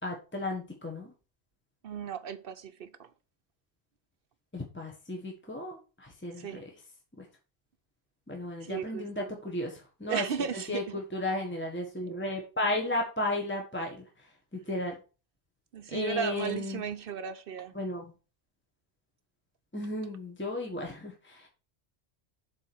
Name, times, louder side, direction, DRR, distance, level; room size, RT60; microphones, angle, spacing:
voice 1, 0.0-1.1 4.5-6.6 7.2-7.3 8.3-10.2 10.5-14.3 14.5-14.9 15.9-16.8 17.7-18.1 19.7-21.5, left 1 dB, 10° left, 1.3 m, -34 dB
voice 2, 1.8-3.1 6.4-6.6 8.6-9.4 10.1-11.0 15.7-17.7, right 7 dB, 60° right, 0.8 m, -36 dB
7.3 x 4.3 x 6.0 m
omnidirectional pair, 1.1 m